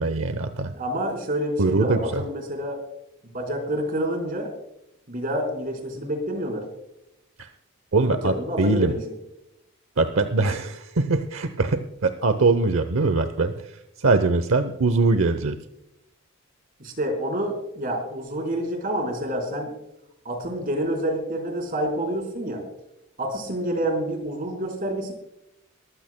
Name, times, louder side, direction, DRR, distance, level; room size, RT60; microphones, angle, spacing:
voice 1, 0.0-0.7 1.6-2.2 7.4-7.5 7.9-8.9 10.0-13.7 14.0-15.6, right 3 dB, 80° right, 9 dB, 0.8 m, -22 dB
voice 2, 0.7-2.8 3.3-4.5 5.1-6.6 8.0-9.0 16.8-19.8 20.2-22.6 23.2-25.1, right 1 dB, 45° right, 2 dB, 4.3 m, -28 dB
23.0 x 15.0 x 2.2 m, 0.85 s
head